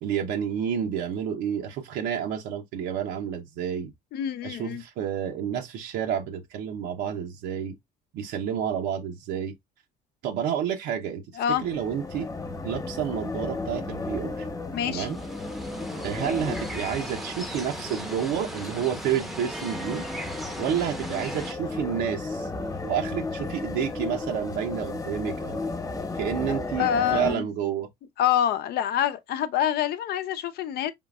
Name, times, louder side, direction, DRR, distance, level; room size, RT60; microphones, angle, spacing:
voice 1, 0.0-3.9 4.4-7.8 8.1-9.5 10.2-12.3 12.6-14.5 14.9-15.2 16.0-20.0 20.6-22.5 22.8-25.6 26.1-27.9, right 9 dB, 90° right, 0.7 m, -30 dB
voice 2, 4.1-4.8 11.4-11.6 14.7-15.1 26.5-27.5 28.2-30.9, left 10 dB, 70° left, 0.6 m, -26 dB
sound 1, 11.6-27.4, left 3 dB, 20° left, 1.1 m, -34 dB
sound 2, 14.8-21.5, right 1 dB, ahead, 0.7 m, -38 dB
4.8 x 3.7 x 2.4 m
cardioid pair, 110°, 17 cm